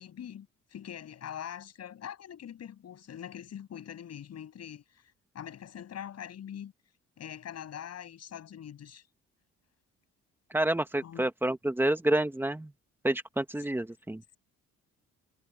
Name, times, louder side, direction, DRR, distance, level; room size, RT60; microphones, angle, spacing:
voice 1, 0.0-6.7 7.2-9.0 11.0-11.3 13.6-13.7, left 9 dB, 55° left, 7.1 m, -43 dB
voice 2, 10.5-12.7 13.0-14.2, right 1 dB, 5° right, 1.3 m, -28 dB
cardioid pair, 130°, 30 cm